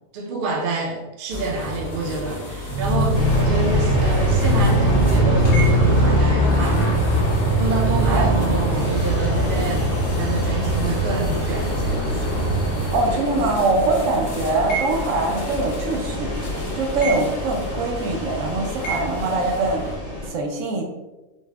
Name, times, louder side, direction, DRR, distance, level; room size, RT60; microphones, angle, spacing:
voice 1, 0.1-6.9 7.6-9.9 10.2-12.1 17.0-17.2, right 3 dB, 55° right, 0 dB, 0.6 m, -28 dB
sound 1, 1.3-20.0, equal, 70° left, 1.2 m, -32 dB
Motorcycle, 2.6-13.3, right 1 dB, 55° left, 0.3 m, -21 dB
sound 2, 3.1-20.3, left 1 dB, 35° left, 0.8 m, -29 dB
voice 2, 8.1-8.9 12.9-16.3 16.8-19.8 20.3-20.8, right 3 dB, 75° right, 2 dB, 0.9 m, -23 dB
4.0 x 2.0 x 2.2 m, 1.1 s
omnidirectional pair, 1.4 m